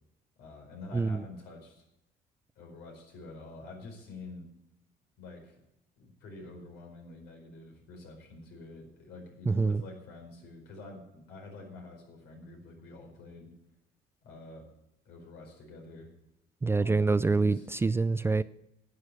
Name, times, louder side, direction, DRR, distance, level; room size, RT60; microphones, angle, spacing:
voice 1, 0.4-1.8 2.6-4.5 5.2-5.6 6.0-13.5 14.2-14.7 15.0-16.1 16.8-17.7, left 2 dB, 80° left, 1 dB, 4.8 m, -47 dB
voice 2, 0.9-1.2 9.5-9.8 16.6-18.4, right 3 dB, 15° right, 15 dB, 0.4 m, -26 dB
11.0 x 8.5 x 8.3 m, 0.84 s
cardioid pair, 110°, 17 cm